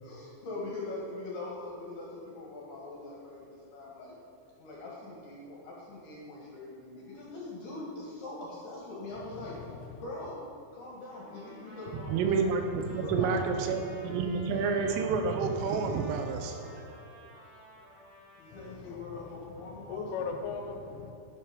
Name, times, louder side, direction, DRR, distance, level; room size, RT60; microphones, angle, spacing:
voice 1, 0.0-4.1 4.6-9.5 10.0-10.4 10.7-12.4 12.7-13.4 14.0-14.6 18.4-20.2, left 2 dB, 60° left, -5 dB, 3.4 m, -42 dB
voice 2, 9.1-10.1 18.5-21.1, left 5 dB, 80° left, 3 dB, 3.6 m, -40 dB
Trumpet, 11.1-18.8, equal, 40° right, 4.2 m, -53 dB
voice 3, 12.1-16.9, right 5 dB, 85° right, 5 dB, 3.7 m, -29 dB
11.0 x 10.5 x 5.3 m, 2.6 s
omnidirectional pair, 5.7 m